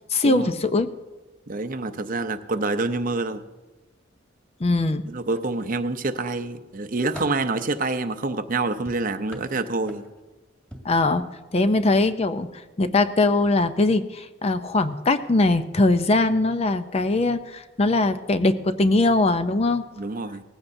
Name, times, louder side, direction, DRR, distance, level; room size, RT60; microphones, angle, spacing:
voice 1, 0.1-0.9 4.6-5.0 10.8-11.3 11.5-12.5 12.8-19.8, left 2 dB, 30° left, 10 dB, 0.5 m, -21 dB
voice 2, 1.5-3.4 5.1-10.0 20.0-20.4, right 3 dB, 45° right, 10 dB, 0.6 m, -27 dB
sound 1, 5.3-6.1 6.6-7.5 8.8-10.3 10.7-11.0 11.9-12.1 12.4-12.6, equal, 5° left, 2.0 m, -44 dB
19.0 x 15.5 x 2.7 m, 1.2 s
head